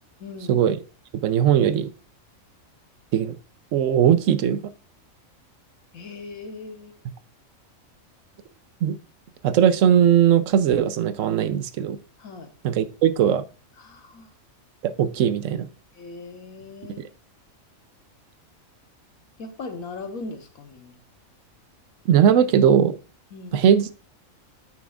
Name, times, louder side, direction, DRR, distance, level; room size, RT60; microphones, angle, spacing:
voice 1, 0.2-0.7 5.9-6.9 12.2-12.5 13.8-14.3 15.9-17.0 19.4-21.0 23.3-23.7, left 3 dB, 85° left, 1.5 m, -39 dB
voice 2, 1.1-1.9 3.1-3.4 3.7-4.7 8.8-9.0 9.4-12.0 12.6-13.4 14.8-15.7 22.1-23.0 23.5-23.9, right 9 dB, 75° right, 0.9 m, -19 dB
9.5 x 6.0 x 2.4 m
omnidirectional pair, 1.4 m